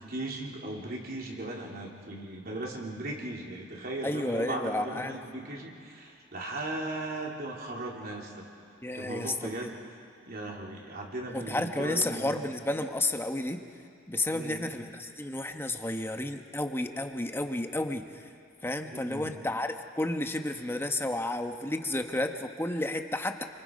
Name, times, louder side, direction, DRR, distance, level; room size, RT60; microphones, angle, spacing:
voice 1, 0.0-8.5 8.9-9.8 10.2-12.4 14.3-14.7 18.9-19.3, right 2 dB, 55° right, -2 dB, 3.6 m, -37 dB
voice 2, 4.0-5.1 8.8-9.5 11.3-13.6 14.1-18.1 18.6-23.4, left 1 dB, 10° left, 5 dB, 1.1 m, -31 dB
28.5 x 24.5 x 5.4 m, 2.3 s
head